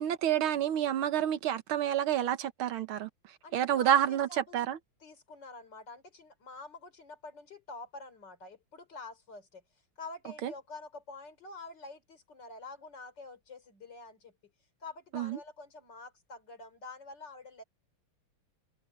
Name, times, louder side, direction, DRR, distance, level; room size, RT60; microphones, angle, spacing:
voice 1, 0.0-3.1 3.5-4.8 10.4-10.5 15.1-15.4, right 10 dB, 75° right, 1.8 m, -29 dB
voice 2, 3.4-4.6 5.0-9.6 10.0-14.3 14.8-17.6, left 3 dB, 50° left, 4.2 m, -47 dB
omnidirectional pair, 2.4 m